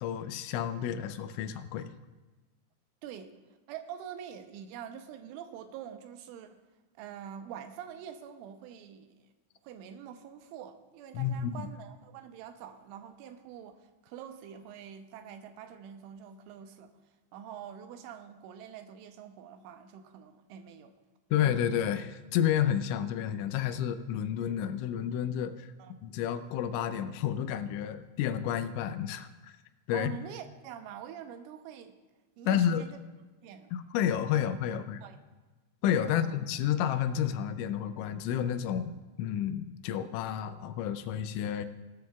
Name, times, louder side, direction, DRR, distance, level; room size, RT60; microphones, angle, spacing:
voice 1, 0.0-1.9 11.1-11.7 21.3-25.7 26.0-29.5 29.9-30.1 32.5-32.9 33.7-35.0 35.8-41.7, left 9 dB, 85° left, 10 dB, 2.9 m, -30 dB
voice 2, 3.0-3.3 3.7-6.6 7.0-9.2 9.6-16.9 17.3-20.9 21.3-21.4 25.8-25.9 29.9-32.0 32.4-33.0 33.4-33.7 34.3-34.4 35.0-35.2 36.0-36.3, right 9 dB, 85° right, 8 dB, 3.3 m, -45 dB
19.0 x 13.0 x 2.3 m, 1.2 s
omnidirectional pair, 5.5 m